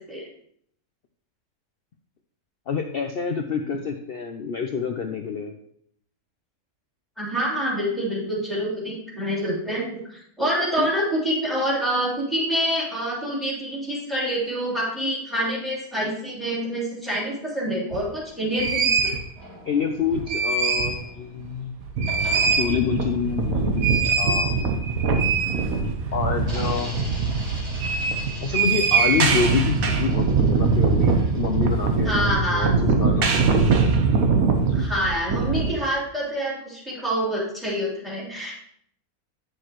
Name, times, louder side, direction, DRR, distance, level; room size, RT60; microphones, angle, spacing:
voice 1, 2.7-5.5 10.8-10.9 19.7-21.7 22.5-24.8 26.1-27.0 28.4-33.3, left 6 dB, 70° left, 5 dB, 0.5 m, -27 dB
voice 2, 7.2-19.1 32.0-32.7 34.7-38.5, equal, ahead, -6 dB, 3.1 m, -26 dB
sound 1, 17.9-18.0 18.5-19.2 20.0-21.0 21.4-21.5 21.8-35.7, right 4 dB, 70° right, 1.4 m, -22 dB
sound 2, 19.4-21.6 22.1-25.7 26.4-32.2, equal, 25° right, 3.2 m, -42 dB
9.7 x 6.5 x 3.0 m, 0.69 s
omnidirectional pair, 1.6 m